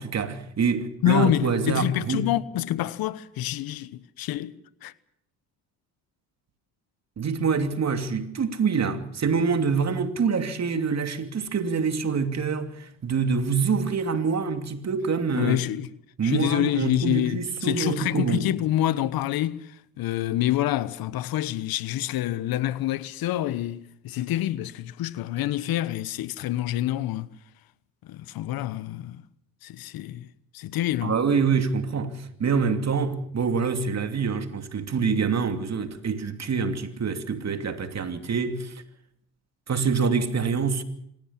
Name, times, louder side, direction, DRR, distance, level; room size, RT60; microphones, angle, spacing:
voice 1, 0.0-2.2 7.2-15.6 16.2-18.5 31.0-38.8 39.7-40.8, right 5 dB, 45° right, 2.8 m, -26 dB
voice 2, 1.0-4.9 15.3-15.9 16.2-27.3 28.0-29.2 29.6-30.3 30.5-31.2, left 13 dB, 65° left, 1.1 m, -27 dB
26.0 x 15.5 x 7.4 m
hypercardioid pair, 60°, 38 cm